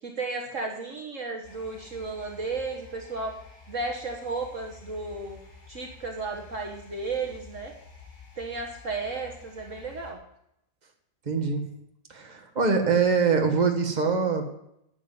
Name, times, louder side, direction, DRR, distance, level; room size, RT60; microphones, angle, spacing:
voice 1, 0.0-3.4 3.7-5.4 5.7-7.7 8.4-10.2, right 3 dB, 50° right, 2 dB, 1.6 m, -34 dB
sound 1, 1.4-10.1, left 4 dB, 65° left, 3.8 m, -50 dB
voice 2, 11.2-11.6 12.1-14.4, right 5 dB, 25° right, 3 dB, 1.7 m, -23 dB
10.0 x 8.2 x 9.5 m, 0.79 s
omnidirectional pair, 1.8 m